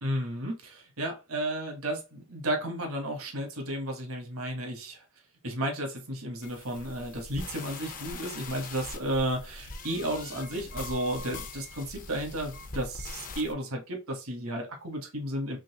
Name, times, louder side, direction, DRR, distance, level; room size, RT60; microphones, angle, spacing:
voice 1, 0.0-5.0 5.4-15.6, right 1 dB, 70° right, 3 dB, 1.2 m, -33 dB
sound 1, 6.4-13.5, left 3 dB, 40° left, 0.6 m, -42 dB
3.9 x 3.1 x 2.8 m, 0.27 s
head